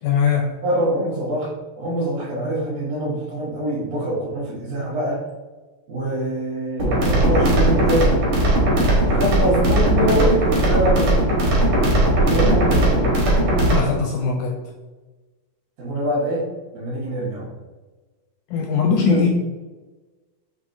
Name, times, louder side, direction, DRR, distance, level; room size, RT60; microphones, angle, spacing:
voice 1, 0.0-0.6 13.7-14.6 18.5-19.3, left 6 dB, 80° left, 1 dB, 1.8 m, -20 dB
voice 2, 0.6-5.3 5.9-8.2 9.0-11.3 12.2-13.2 14.2-14.3 15.8-17.5 19.1-19.3, right 1 dB, 80° right, -10 dB, 2.9 m, -24 dB
sound 1, 6.8-13.8, right 1 dB, 60° right, 1.4 m, -18 dB
7.0 x 2.7 x 2.6 m, 1.2 s
omnidirectional pair, 4.0 m